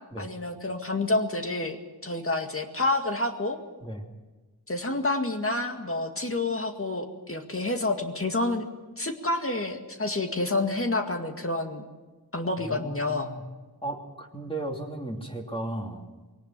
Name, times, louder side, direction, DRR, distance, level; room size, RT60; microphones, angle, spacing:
voice 1, 0.2-3.6 4.7-8.6 9.0-11.9 12.3-13.3, left 2 dB, 35° left, 4 dB, 2.1 m, -28 dB
voice 2, 12.6-13.4 13.8-16.0, right 1 dB, 15° left, 1 dB, 3.1 m, -35 dB
22.0 x 18.0 x 7.5 m, 1.2 s
wide cardioid pair, 75°, 39 cm